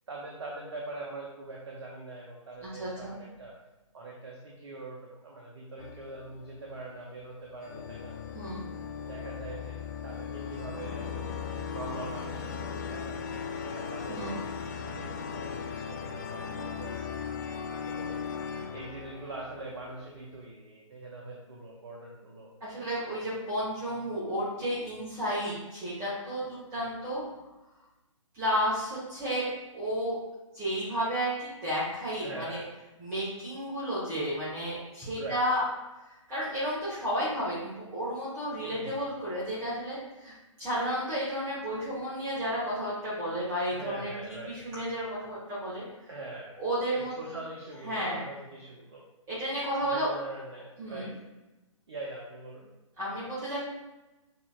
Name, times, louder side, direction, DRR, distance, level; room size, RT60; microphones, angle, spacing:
voice 1, 0.1-3.5 3.9-8.1 9.1-11.4 11.7-17.2 17.8-18.3 18.7-22.5 26.8-26.9 32.2-32.7 35.2-35.4 38.6-39.0 43.7-44.6 46.1-46.6 46.9-49.0 49.9-51.2 51.9-52.7, right 2 dB, 55° right, -3 dB, 0.9 m, -43 dB
voice 2, 2.6-3.1 8.3-8.6 14.1-14.4 22.6-27.2 28.3-29.5 29.7-30.2 30.5-32.6 33.0-35.6 36.1-45.8 46.6-47.1 47.8-48.2 49.3-50.1 50.8-51.1 53.0-53.6, equal, 20° right, -10 dB, 1.3 m, -32 dB
sound 1, 5.8-7.0 7.6-20.2, left 6 dB, 35° left, 0.4 m, -38 dB
6.6 x 2.9 x 2.4 m, 1.0 s
figure-of-eight pair, 130°, 17 cm